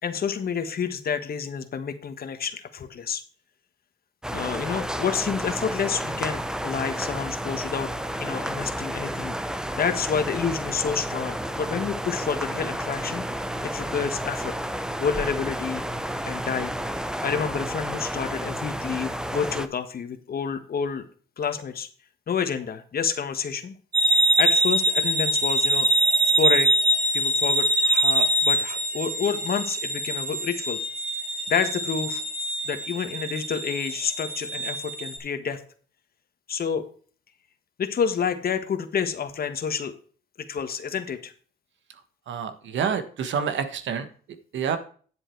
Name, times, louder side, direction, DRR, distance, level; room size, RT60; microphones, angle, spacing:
voice 1, 0.0-3.2 4.3-7.9 8.2-9.3 9.8-13.2 13.6-14.6 15.0-15.8 16.2-16.7 17.2-21.0 21.4-21.9 22.3-23.7 24.1-25.9 26.4-26.7 27.1-30.8 31.5-32.2 32.6-35.6 36.5-36.9 37.8-39.9 40.5-41.3, left 6 dB, 50° left, 9 dB, 1.4 m, -29 dB
sound 1, 4.2-19.7, right 1 dB, 5° right, 0.8 m, -31 dB
sound 2, 23.9-35.2, right 1 dB, 55° right, 5.0 m, -24 dB
voice 2, 42.3-44.1 44.5-44.8, right 7 dB, 70° right, 10 dB, 1.4 m, -27 dB
10.0 x 7.8 x 4.6 m, 0.43 s
cardioid pair, 90°, 20 cm